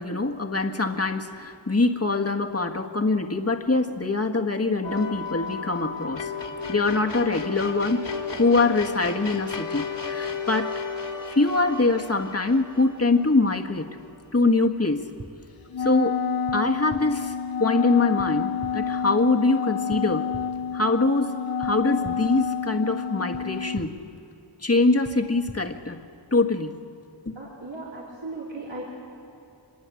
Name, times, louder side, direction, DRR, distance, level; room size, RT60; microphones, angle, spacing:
voice 1, 0.0-6.3 6.7-8.1 8.4-10.8 11.3-14.0 14.3-15.1 15.8-16.2 16.5-20.3 20.7-24.0 24.6-26.0 26.3-26.9 27.2-27.3, left 3 dB, 30° left, 4 dB, 1.6 m, -24 dB
sound 1, 4.8-14.1, left 5 dB, 75° left, 2.9 m, -34 dB
sound 2, 15.2-15.3 16.5-16.6 16.9-17.0 18.2-18.3 18.6-18.7 19.9-20.0 20.3-20.4 21.6-21.7 22.0-22.1 23.3-23.4 23.7-23.9 25.0-25.1 25.5-25.6, right 2 dB, 25° right, 1.3 m, -39 dB
Wind instrument woodwind instrument, 15.7-23.8, left 6 dB, 50° left, 0.7 m, -29 dB
voice 2, 27.3-28.9, right 2 dB, 80° right, -7 dB, 4.7 m, -37 dB
25.0 x 21.5 x 8.5 m, 2.8 s
wide cardioid pair, 55°, 45 cm